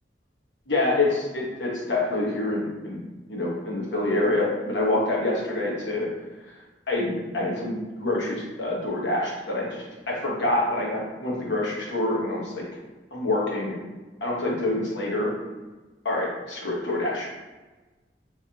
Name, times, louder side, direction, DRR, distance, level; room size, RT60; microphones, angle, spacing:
voice 1, 0.7-3.0 3.3-6.1 6.9-12.6 13.1-13.8 14.2-15.3 16.0-17.3, left 2 dB, 85° left, -4 dB, 1.1 m, -26 dB
3.5 x 3.4 x 2.9 m, 1.2 s
head